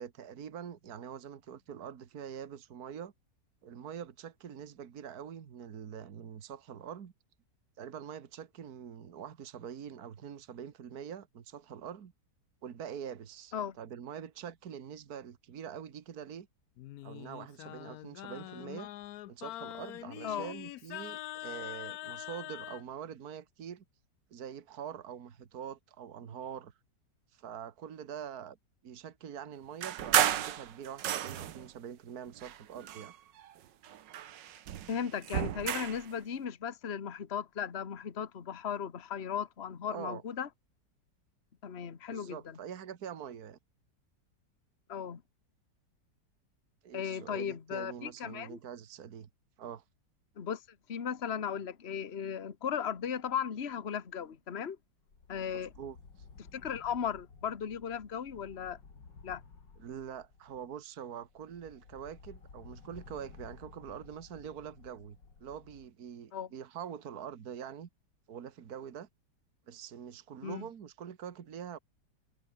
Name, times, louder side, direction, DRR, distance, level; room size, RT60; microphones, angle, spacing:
voice 1, 0.0-3.1 3.6-7.1 7.8-12.1 12.6-16.5 17.0-18.9 19.3-23.8 24.3-26.7 27.3-28.6 28.8-33.1 39.9-40.2 42.1-43.6 46.8-49.3 49.6-49.8 55.5-56.0 59.8-67.9 68.3-69.1 69.7-71.8, right 8 dB, 60° right, 1.9 m, -44 dB
Singing, 16.8-22.8, left 15 dB, 70° left, 0.9 m, -44 dB
sound 1, 29.8-31.7 32.4-33.5 33.8-36.1, right 11 dB, 85° right, 1.7 m, -32 dB
voice 2, 34.9-40.5 41.6-42.6 44.9-45.2 46.9-48.6 50.4-50.6 50.9-54.8 55.3-55.7 56.5-58.8 59.2-59.4 66.3-66.5 70.4-70.7, left 8 dB, 40° left, 1.5 m, -36 dB
sound 2, 53.0-53.7 54.1-54.3 55.0-60.8 61.2-65.9, left 5 dB, 85° left, 3.7 m, -55 dB
omnidirectional pair, 1.9 m